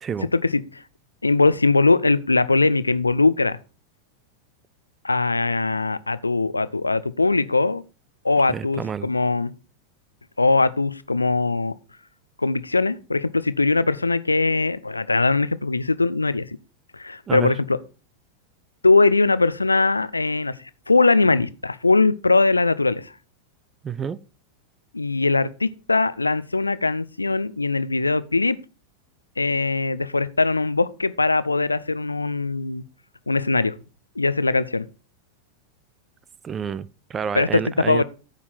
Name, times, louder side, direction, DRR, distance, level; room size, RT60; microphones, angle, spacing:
voice 1, 0.2-0.8 1.2-3.6 5.0-7.8 8.2-9.5 10.4-11.7 12.4-16.5 16.9-17.8 18.8-20.5 20.9-23.1 24.9-28.6 29.4-32.8 33.3-33.7 34.2-34.9 37.3-38.0, left 3 dB, 80° left, 0.6 m, -21 dB
voice 2, 8.5-9.1 17.3-17.5 23.8-24.2 36.4-38.0, right 7 dB, 20° right, 0.5 m, -29 dB
14.0 x 5.7 x 4.3 m
figure-of-eight pair, 90°, 0 cm